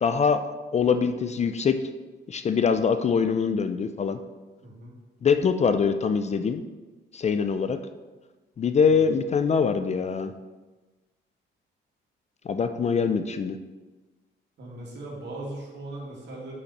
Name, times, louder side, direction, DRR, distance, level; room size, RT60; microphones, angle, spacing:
voice 1, 0.0-0.4 0.7-1.8 2.3-4.2 5.2-6.6 7.1-7.8 8.6-10.3 12.5-13.6, left 6 dB, 35° left, 9 dB, 0.4 m, -23 dB
voice 2, 4.6-4.9 8.9-9.0 14.6-16.5, right 2 dB, 60° right, -3 dB, 2.2 m, -39 dB
5.8 x 5.6 x 4.1 m, 1.2 s
cardioid pair, 90°, 20 cm